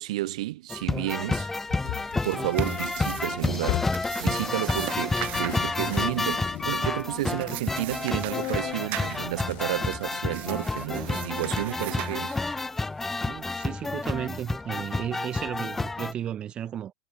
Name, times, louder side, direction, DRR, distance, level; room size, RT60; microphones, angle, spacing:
voice 1, 0.0-1.5 2.2-12.4, right 17 dB, 80° right, 1.1 m, -31 dB
sound 1, 0.7-16.1, left 3 dB, 10° left, 0.6 m, -30 dB
sound 2, 1.6-4.8 5.2-10.4 10.7-10.8 11.4-11.6, left 21 dB, 45° left, 1.1 m, -38 dB
sound 3, 1.9-12.8, right 20 dB, 40° right, 4.5 m, -40 dB
voice 2, 13.2-16.9, right 10 dB, 25° right, 3.3 m, -34 dB
supercardioid pair, 160°, 4 cm